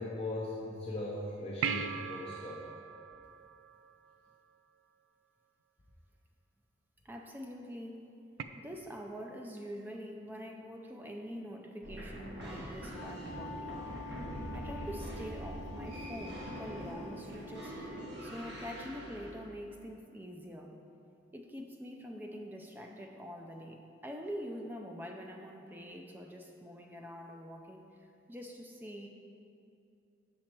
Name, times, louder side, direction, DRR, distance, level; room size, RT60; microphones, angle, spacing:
voice 1, 0.0-2.6, left 2 dB, 30° left, -5 dB, 0.7 m, -39 dB
sound 1, 1.6-4.3 8.4-8.5, right 6 dB, 80° right, 0.4 m, -39 dB
voice 2, 7.0-8.1 8.6-13.8 14.5-17.8 18.2-20.8 21.3-27.9 28.3-29.1, equal, 10° right, 2 dB, 0.5 m, -45 dB
sound 2, 11.8-19.4, equal, 60° right, 1.4 m, -43 dB
Wind instrument woodwind instrument, 12.7-18.1, left 1 dB, 65° left, 0.7 m, -48 dB
7.3 x 6.3 x 4.5 m, 2.6 s
head